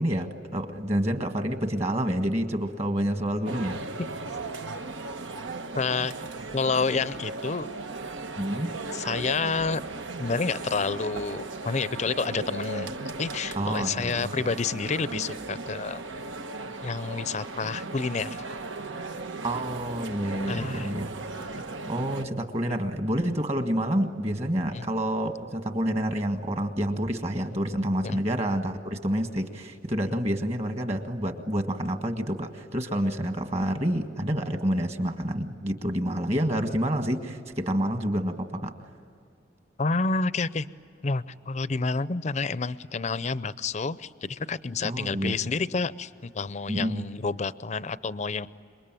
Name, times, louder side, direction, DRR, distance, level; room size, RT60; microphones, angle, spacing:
voice 1, 0.0-3.8 6.0-6.1 8.4-8.7 13.5-14.3 19.4-21.1 21.9-38.7 44.8-45.4 46.7-47.0, equal, 35° right, 6 dB, 1.7 m, -28 dB
sound 1, 3.5-22.3, right 3 dB, 85° right, 1.2 m, -37 dB
voice 2, 5.7-6.1 6.5-7.7 8.9-9.8 10.2-12.9 13.2-16.0 16.8-18.4 20.5-20.9 24.7-24.8 28.0-28.2 39.8-40.7 41.0-48.5, left 4 dB, 35° left, 16 dB, 0.6 m, -29 dB
27.5 x 23.0 x 9.1 m, 2.5 s
head